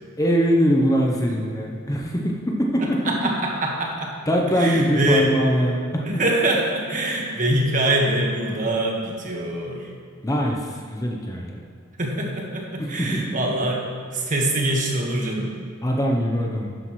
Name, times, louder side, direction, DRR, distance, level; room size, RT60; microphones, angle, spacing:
voice 1, 0.2-3.3 4.3-6.3 10.2-11.6 12.8-13.4 15.8-16.7, equal, 15° left, 0 dB, 0.8 m, -22 dB
voice 2, 3.0-4.1 4.6-5.3 6.1-9.9 12.0-13.8 14.1-15.5, right 1 dB, 40° right, -1 dB, 1.5 m, -24 dB
12.0 x 9.7 x 3.2 m, 2.2 s
head